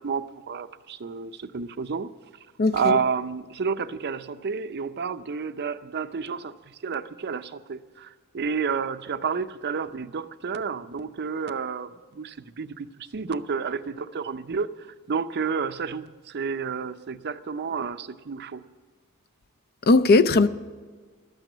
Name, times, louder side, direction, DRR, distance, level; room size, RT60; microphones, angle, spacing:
voice 1, 0.0-2.1 2.7-18.6, right 5 dB, 50° right, 0.5 m, -30 dB
voice 2, 2.6-3.0 19.9-20.5, left 3 dB, 45° left, 0.5 m, -18 dB
12.5 x 9.0 x 9.0 m
head